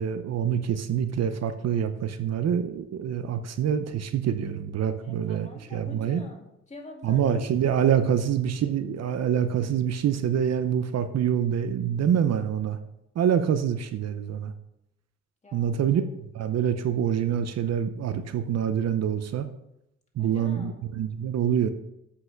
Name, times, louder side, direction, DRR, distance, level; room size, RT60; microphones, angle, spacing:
voice 1, 0.0-6.2 7.0-12.8 13.2-14.5 15.5-19.5 20.2-21.7, right 8 dB, 60° right, 10 dB, 0.7 m, -26 dB
voice 2, 5.0-7.9 15.4-16.1 20.2-20.9, left 2 dB, 25° left, 0 dB, 2.4 m, -46 dB
7.9 x 5.7 x 5.8 m, 0.82 s
cardioid pair, 90°, 30 cm